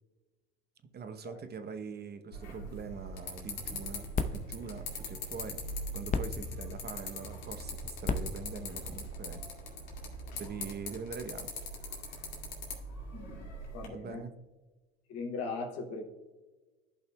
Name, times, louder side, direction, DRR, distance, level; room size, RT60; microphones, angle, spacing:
voice 1, 0.9-5.6 5.9-9.4 10.3-11.5 13.8-14.3, right 6 dB, 35° right, 9 dB, 0.9 m, -43 dB
sound 1, 2.3-13.9, left 1 dB, 70° left, 2.2 m, -41 dB
sound 2, 3.6-10.0, left 4 dB, 25° left, 0.7 m, -39 dB
voice 2, 13.1-13.4 13.7-14.2 15.1-16.0, left 4 dB, 55° left, -1 dB, 2.4 m, -38 dB
14.5 x 5.5 x 2.3 m, 1.2 s
hypercardioid pair, 70°, 30 cm